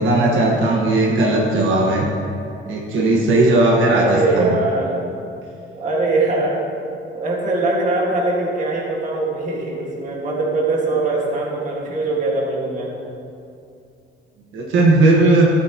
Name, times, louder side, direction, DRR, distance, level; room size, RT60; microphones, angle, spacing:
voice 1, 0.0-2.0 2.7-4.5 14.5-15.5, right 2 dB, 75° right, -2 dB, 1.4 m, -16 dB
voice 2, 3.9-4.9 5.8-6.6 7.1-12.9, right 2 dB, 40° right, -2 dB, 1.9 m, -21 dB
14.5 x 8.7 x 3.0 m, 2.5 s
cardioid pair, 165°, 20 cm